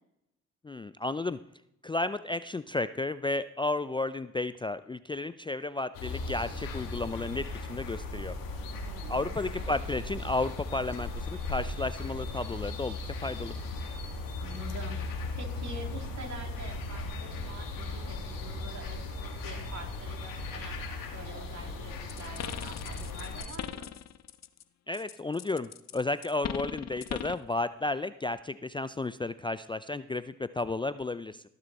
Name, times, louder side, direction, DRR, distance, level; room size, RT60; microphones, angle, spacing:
voice 1, 0.6-1.4 1.8-8.4 9.1-13.5 24.9-31.4, left 2 dB, 15° left, 14 dB, 0.4 m, -33 dB
sound 1, 5.9-23.4, left 3 dB, 85° left, 1.9 m, -37 dB
voice 2, 8.8-9.3 9.5-9.7 14.4-15.0 15.3-20.8 21.1-23.9, right 2 dB, 55° right, 2 dB, 3.0 m, -45 dB
sound 2, 22.1-24.6 24.9-27.5, left 9 dB, 55° left, 0.7 m, -39 dB
17.5 x 6.8 x 4.2 m, 0.79 s
supercardioid pair, 55°, 33 cm